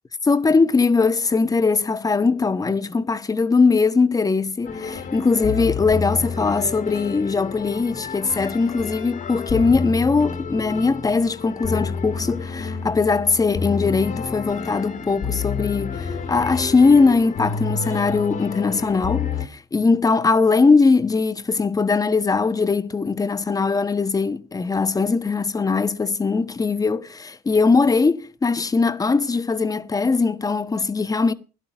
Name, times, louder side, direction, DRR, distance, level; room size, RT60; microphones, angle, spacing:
voice 1, 0.2-31.3, left 4 dB, 20° left, 1.2 m, -20 dB
sound 1, 4.6-19.5, left 5 dB, 50° left, 2.2 m, -29 dB
16.5 x 11.5 x 6.1 m
cardioid pair, 110°, 17 cm